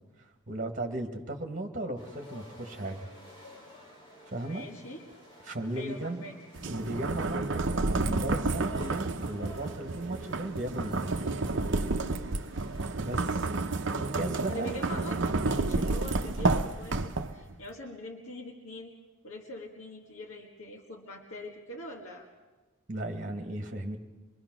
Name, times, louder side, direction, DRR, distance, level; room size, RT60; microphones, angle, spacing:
voice 1, 0.5-3.1 4.3-4.7 5.5-6.3 6.7-11.3 13.0-13.5 14.1-14.7 22.9-24.0, right 1 dB, 40° right, 5 dB, 1.8 m, -36 dB
sound 1, 2.0-16.6, equal, 20° left, 4.5 m, -53 dB
voice 2, 4.4-5.0 5.7-6.3 14.5-18.9 19.2-22.3, equal, 70° left, -1 dB, 1.8 m, -43 dB
sound 2, 6.5-17.5, right 3 dB, 55° right, 0.8 m, -30 dB
25.0 x 21.0 x 6.2 m, 1.2 s
head